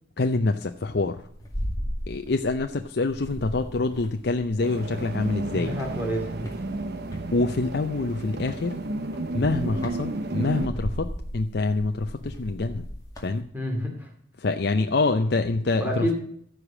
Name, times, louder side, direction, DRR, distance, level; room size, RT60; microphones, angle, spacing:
voice 1, 0.2-1.2 2.1-5.7 7.3-8.8 9.3-12.9 13.2-13.5 14.4-16.1, left 3 dB, 55° left, 6 dB, 0.6 m, -26 dB
sound 1, 0.7-2.8 3.1-5.3 5.7-7.3 8.4-8.7 9.1-13.4, equal, 20° left, 2.2 m, -36 dB
sound 2, 4.6-10.7, right 2 dB, 55° right, 0.9 m, -32 dB
voice 2, 5.4-6.5 13.5-14.1 15.8-16.1, equal, 10° right, 1 dB, 2.8 m, -29 dB
14.5 x 5.0 x 7.3 m, 0.66 s
head